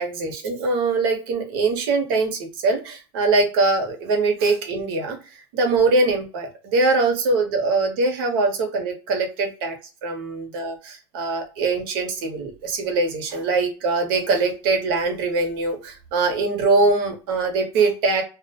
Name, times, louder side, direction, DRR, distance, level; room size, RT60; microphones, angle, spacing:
voice 1, 0.0-5.2 5.5-9.8 10.0-18.2, right 3 dB, 65° right, 4 dB, 0.9 m, -22 dB
2.4 x 2.1 x 2.8 m, 0.33 s
supercardioid pair, 170°, 13 cm